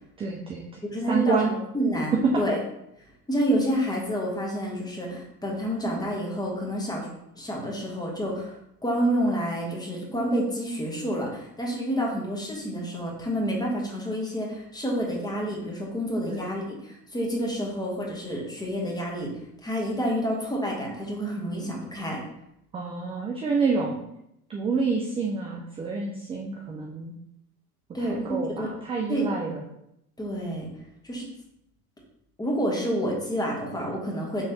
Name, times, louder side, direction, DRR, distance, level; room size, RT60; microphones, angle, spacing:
voice 1, 0.2-0.6 1.1-1.5 2.2-2.3 16.2-16.5 22.7-24.0 24.5-27.1 28.1-29.6, right 4 dB, 15° right, -1 dB, 0.3 m, -28 dB
voice 2, 0.8-2.6 3.3-7.1 7.3-22.2 27.9-28.7 29.1-29.3 30.2-30.7 31.0-31.3 32.4-34.5, equal, 10° left, -2 dB, 1.4 m, -29 dB
5.6 x 3.1 x 2.9 m, 0.80 s
hypercardioid pair, 75°, 46 cm